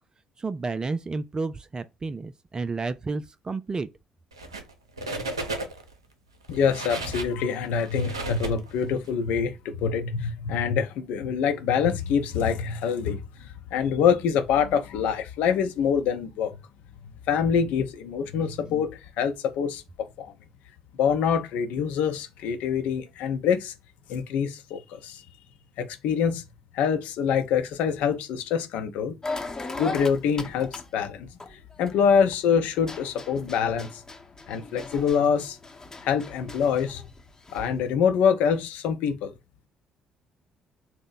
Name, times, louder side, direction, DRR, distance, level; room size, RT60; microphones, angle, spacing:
voice 1, 0.4-3.9, right 3 dB, 30° right, 0.3 m, -31 dB
sound 1, 4.3-4.7 5.0-5.9 6.4-9.1, right 2 dB, 85° right, 0.5 m, -34 dB
voice 2, 6.5-16.6 17.3-19.8 20.2-20.3 21.0-23.7 24.1-25.2 25.8-26.4 26.7-29.2 29.8-34.0 34.5-35.6 36.0-37.0 37.5-39.3, left 7 dB, 65° left, 0.6 m, -25 dB
sound 2, 29.2-32.4 32.8-37.8, left 3 dB, 25° left, 0.9 m, -38 dB
2.8 x 2.1 x 3.9 m
figure-of-eight pair, 45°, 3 cm